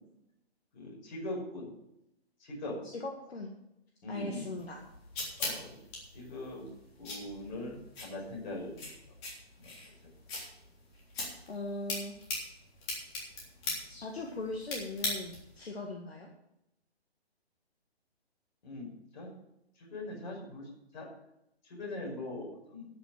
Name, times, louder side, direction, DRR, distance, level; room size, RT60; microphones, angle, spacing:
voice 1, 0.7-1.7 2.4-2.8 4.0-4.4 5.4-5.8 6.1-6.6 7.0-8.9 9.6-9.7 18.6-19.3 19.8-21.1 21.6-22.9, left 2 dB, 45° left, -2 dB, 5.6 m, -41 dB
voice 2, 2.8-3.5 4.1-4.8 11.5-12.1 13.9-16.3, left 2 dB, 70° left, 1 dB, 2.0 m, -39 dB
sound 1, 4.6-15.6, left 2 dB, 25° left, 3.5 m, -41 dB
12.5 x 6.3 x 8.0 m, 0.85 s
hypercardioid pair, 150°, 32 cm